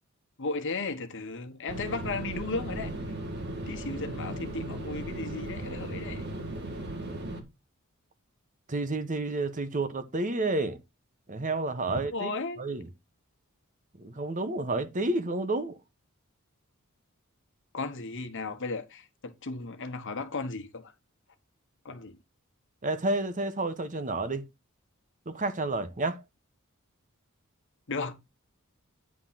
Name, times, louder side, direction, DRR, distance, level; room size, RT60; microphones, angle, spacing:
voice 1, 0.4-2.9 3.7-6.3 11.9-12.6 17.7-20.9 21.8-22.2 27.9-28.1, left 3 dB, 60° left, 1.2 m, -35 dB
sound 1, 1.7-7.4, right 1 dB, 55° right, 2.0 m, -37 dB
voice 2, 8.7-10.8 11.3-12.3 12.6-12.9 14.0-15.8 22.8-24.4 25.3-26.2, right 2 dB, 40° right, 1.0 m, -30 dB
9.8 x 3.7 x 5.7 m
head